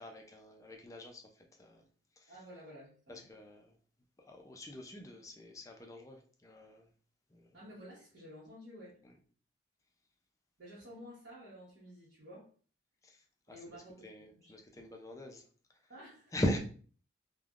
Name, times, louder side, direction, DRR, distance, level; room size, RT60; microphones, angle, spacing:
voice 1, 0.0-1.9 2.2-2.4 3.1-3.8 4.2-6.9 7.3-7.6 9.0-9.1 13.0-13.8 14.0-15.4 16.3-16.6, equal, 15° left, 3 dB, 0.4 m, -41 dB
voice 2, 2.3-3.3 7.5-9.0 10.6-12.5 13.5-14.5 15.9-16.3, equal, 60° right, -9 dB, 1.1 m, -52 dB
3.3 x 2.2 x 2.4 m, 0.42 s
head